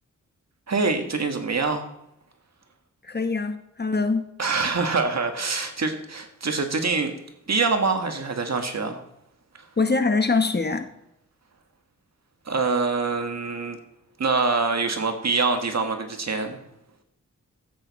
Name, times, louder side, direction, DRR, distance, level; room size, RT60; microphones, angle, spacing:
voice 1, 0.7-1.9 4.4-7.2 7.5-9.0 12.4-13.8 14.2-16.6, right 4 dB, 55° right, 1.6 m, -25 dB
voice 2, 3.1-4.3 9.8-10.9, left 4 dB, 30° left, 1.0 m, -23 dB
13.0 x 8.3 x 4.1 m
cardioid pair, 65°, 31 cm